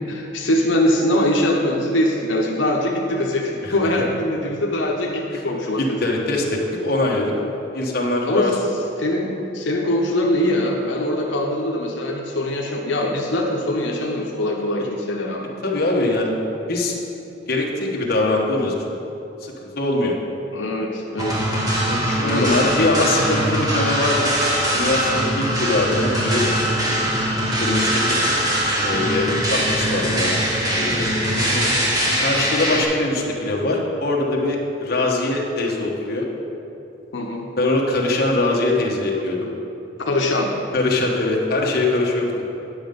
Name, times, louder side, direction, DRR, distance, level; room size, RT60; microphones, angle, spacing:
voice 1, 0.1-6.0 8.3-8.5 9.0-15.5 20.5-21.4 22.2-22.5 31.4-31.8 37.1-37.5 40.0-40.5, left 1 dB, 85° left, -1 dB, 0.9 m, -22 dB
voice 2, 5.8-7.3 7.7-8.5 15.4-16.3 16.7-17.0 17.5-18.9 19.4-20.1 21.8-24.4 24.7-26.8 27.6-28.2 28.8-30.3 30.8-31.1 32.2-36.3 37.6-39.5 40.7-42.5, left 2 dB, 55° left, -2 dB, 1.3 m, -22 dB
sound 1, 21.2-32.8, right 1 dB, 20° right, 1.6 m, -22 dB
9.9 x 6.6 x 5.3 m, 2.9 s
head